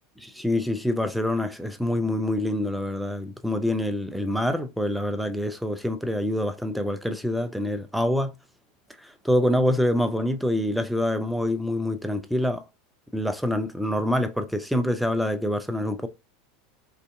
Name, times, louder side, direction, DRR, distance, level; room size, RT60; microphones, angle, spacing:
voice 1, 0.2-8.3 9.0-12.6 13.1-16.1, left 1 dB, ahead, 0.3 m, -26 dB
2.5 x 2.4 x 2.3 m
figure-of-eight pair, 80°, 0 cm